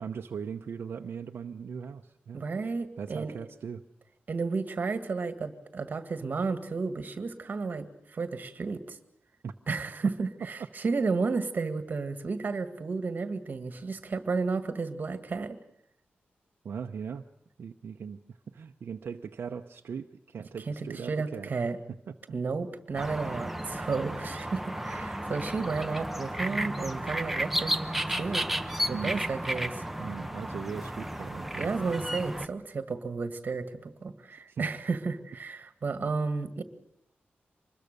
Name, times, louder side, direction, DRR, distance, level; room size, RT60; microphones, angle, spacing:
voice 1, 0.0-2.4 3.0-3.8 9.4-9.5 16.6-17.3 17.6-21.5 22.1-22.2 28.9-29.2 30.0-31.7 34.5-34.6, right 6 dB, 75° right, 4 dB, 0.8 m, -39 dB
voice 2, 2.3-3.3 4.3-9.0 9.7-15.6 20.7-21.8 22.3-27.8 28.1-28.5 28.9-29.8 31.6-36.6, right 4 dB, 50° right, 9 dB, 1.8 m, -32 dB
sound 1, 22.9-32.5, right 1 dB, 5° right, 1.0 m, -33 dB
25.0 x 21.0 x 6.7 m, 0.74 s
wide cardioid pair, 125°, 4 cm